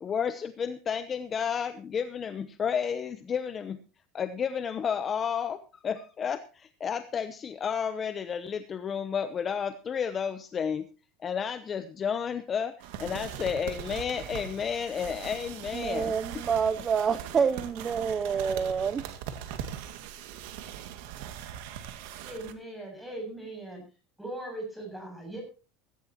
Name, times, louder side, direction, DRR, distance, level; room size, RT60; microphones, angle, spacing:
voice 1, 0.0-3.8 4.1-10.8 11.2-16.1, left 7 dB, 25° left, 11 dB, 0.8 m, -31 dB
sound 1, 12.8-22.5, right 9 dB, 70° right, 2.1 m, -41 dB
voice 2, 15.7-19.0, right 6 dB, 25° right, 14 dB, 0.6 m, -27 dB
voice 3, 22.2-23.8 24.2-25.4, right 1 dB, 5° right, 2 dB, 7.8 m, -39 dB
16.5 x 15.5 x 3.0 m, 0.35 s
supercardioid pair, 150°, 0 cm